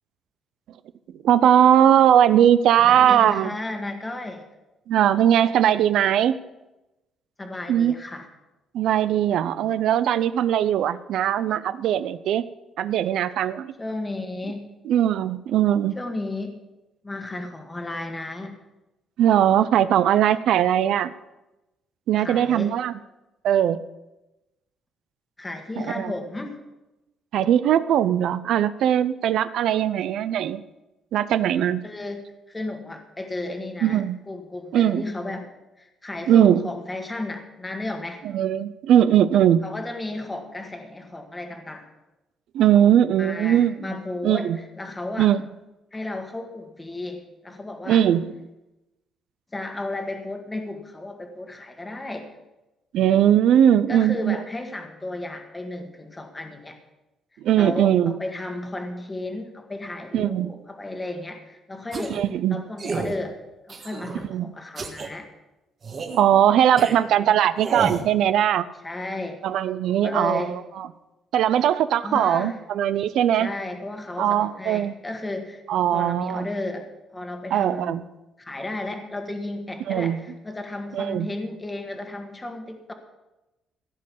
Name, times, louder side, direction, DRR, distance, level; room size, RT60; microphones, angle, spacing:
voice 1, 1.2-3.5 4.9-6.3 7.7-8.0 8.7-12.4 12.8-13.7 14.9-15.9 19.2-21.1 22.1-22.9 23.4-23.8 25.8-26.1 27.3-30.6 31.1-31.8 33.8-34.2 34.7-35.0 36.3-36.6 38.2-39.6 42.5-43.7 44.2-44.6 45.2-45.4 47.9-48.3 52.9-54.4 57.4-58.2 60.1-60.5 62.1-62.6 64.3-64.5 66.0-68.7 69.4-70.9 71.3-73.5 74.2-74.9 75.7-76.5 77.5-78.0 79.9-80.2 80.9-81.3, right 10 dB, 70° right, 14 dB, 0.5 m, -20 dB
voice 2, 2.8-4.4 7.4-8.3 13.8-14.8 16.0-16.6 17.0-18.6 22.2-22.8 25.4-26.6 31.8-35.5 35.8-38.2 39.6-41.9 43.2-45.3 45.9-48.0 49.5-52.3 53.9-56.8 57.5-62.2 62.5-63.4 63.7-65.3 67.1-67.4 68.8-69.4 69.8-70.6 72.0-72.6 73.4-75.6 75.9-76.9 77.1-78.1 78.4-82.9, left 2 dB, 15° left, 5 dB, 1.4 m, -33 dB
sound 1, 61.9-62.3 62.8-63.2 63.7-64.2 64.8-65.1 65.8-66.2 66.8-66.9 67.6-68.1, right 4 dB, 35° right, 1.5 m, -30 dB
16.0 x 5.3 x 8.4 m, 0.99 s
cardioid pair, 155°, 0 cm